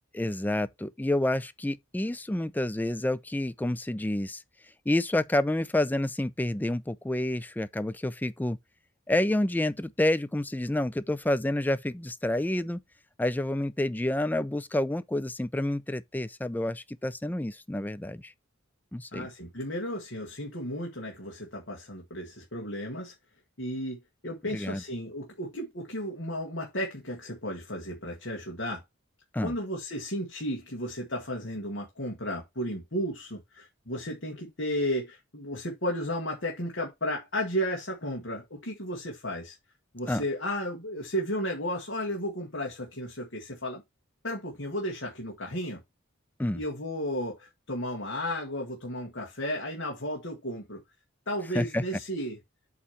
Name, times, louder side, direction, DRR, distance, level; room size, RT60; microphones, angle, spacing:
voice 1, 0.1-4.4 4.9-8.6 9.1-12.8 13.2-18.3 18.9-19.3 24.5-24.8 29.3-29.5 40.1-40.2 46.4-46.6 51.5-51.8, left 1 dB, 10° left, 0.4 m, -29 dB
voice 2, 19.1-23.1 23.6-28.8 29.4-39.6 39.9-43.8 44.2-45.8 46.5-50.8 51.3-52.4, equal, 60° left, 1.7 m, -34 dB
8.4 x 3.1 x 5.6 m
head